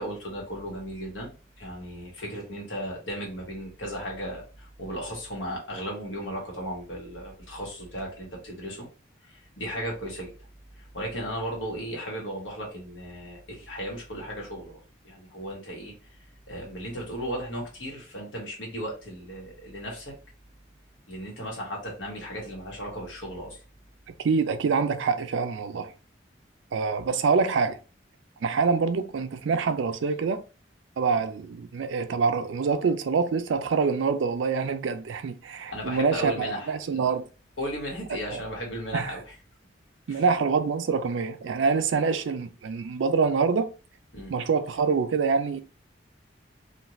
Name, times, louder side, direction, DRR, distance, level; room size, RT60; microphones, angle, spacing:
voice 1, 0.0-8.9 9.3-10.3 10.9-14.8 15.0-15.9 16.5-20.1 21.1-23.6 35.7-36.7 37.6-39.2 40.1-40.2 44.1-44.3, equal, 80° left, 1.2 m, -35 dB
voice 2, 24.2-25.9 26.7-27.8 28.4-30.4 31.0-37.3 38.3-38.4 38.9-39.2 40.1-43.7 44.3-45.6, right 5 dB, 80° right, 0.4 m, -25 dB
2.5 x 2.4 x 3.0 m
head